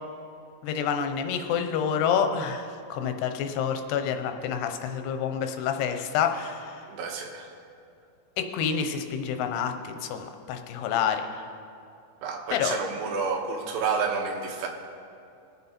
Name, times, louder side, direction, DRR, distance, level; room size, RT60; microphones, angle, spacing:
voice 1, 0.6-6.8 8.4-11.4 12.5-12.7, left 7 dB, 90° left, 6 dB, 3.0 m, -28 dB
voice 2, 6.9-7.5 12.2-14.7, right 5 dB, 90° right, 2 dB, 3.4 m, -30 dB
22.0 x 8.1 x 4.3 m, 2.6 s
omnidirectional pair, 4.6 m